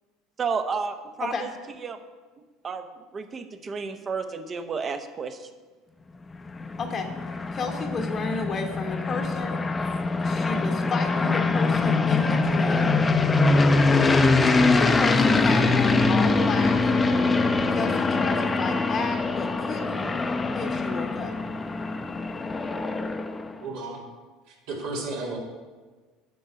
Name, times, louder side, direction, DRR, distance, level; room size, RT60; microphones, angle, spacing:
voice 1, 0.4-1.5 1.8-2.0 2.6-2.9 3.1-5.5, right 5 dB, 35° right, 9 dB, 0.8 m, -31 dB
sound 1, 6.3-23.5, left 3 dB, 20° left, 0.6 m, -23 dB
voice 2, 6.8-7.1 7.5-9.7 10.2-12.9 14.8-16.8 17.7-20.1 20.5-21.4, left 4 dB, 40° left, 3 dB, 1.0 m, -32 dB
voice 3, 23.6-24.0 24.5-25.4, right 3 dB, 75° right, -1 dB, 2.1 m, -33 dB
8.5 x 5.5 x 5.1 m, 1.3 s
supercardioid pair, 85°, 0 cm